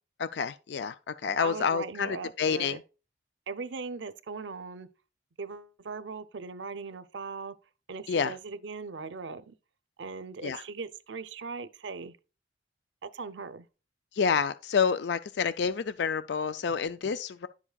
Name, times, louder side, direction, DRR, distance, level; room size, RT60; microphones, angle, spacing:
voice 1, 0.2-2.8 8.1-8.3 10.4-10.6 14.1-17.5, left 6 dB, 60° left, 0.4 m, -28 dB
voice 2, 1.4-2.8 3.5-4.9 5.4-7.5 7.9-9.5 10.0-12.2 13.0-13.7, right 4 dB, 70° right, 0.6 m, -39 dB
11.0 x 7.2 x 2.3 m
head